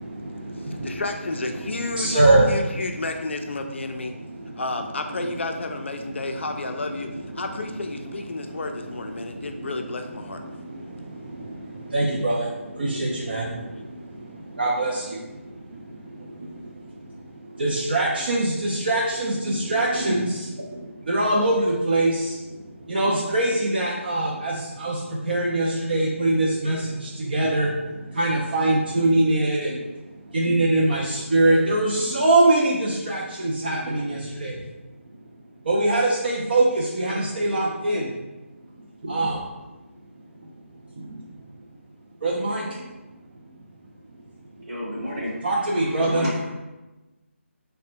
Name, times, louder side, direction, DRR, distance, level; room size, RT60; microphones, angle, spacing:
voice 1, 0.0-1.0 2.0-2.5 9.2-9.7 10.5-14.0 14.3-15.4 16.2-16.5 17.5-22.4 22.9-27.8 28.1-29.8 30.3-34.6 35.7-38.1 39.0-39.4 41.0-41.1 42.2-42.8 45.4-46.3, right 2 dB, 45° right, -4 dB, 0.4 m, -23 dB
voice 2, 0.7-4.1 4.6-7.1 7.3-10.4, left 2 dB, 60° left, 5 dB, 0.4 m, -31 dB
voice 3, 44.7-46.5, equal, 25° right, -8 dB, 0.8 m, -32 dB
3.2 x 2.1 x 2.8 m, 1.1 s
figure-of-eight pair, 155°, 7 cm